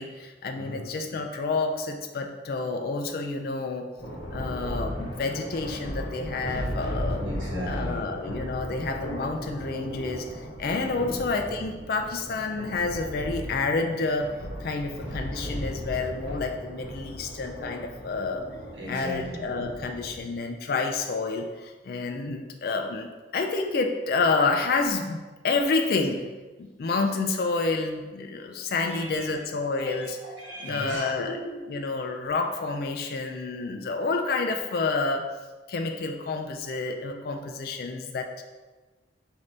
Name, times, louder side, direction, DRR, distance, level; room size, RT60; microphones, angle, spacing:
voice 1, 0.0-3.9 4.3-7.2 7.7-10.2 10.6-14.3 14.6-18.5 18.9-25.2 25.4-26.3 26.6-30.2 30.6-31.4 31.7-35.3 35.7-38.4, left 3 dB, 55° left, 3 dB, 0.3 m, -29 dB
Thunder, 4.0-20.2, equal, 70° left, 1.1 m, -36 dB
voice 2, 7.2-8.1 10.9-11.0 18.7-19.8 28.8-29.5 29.8-31.9, equal, 85° right, -5 dB, 1.3 m, -38 dB
5.0 x 2.7 x 3.2 m, 1.2 s
head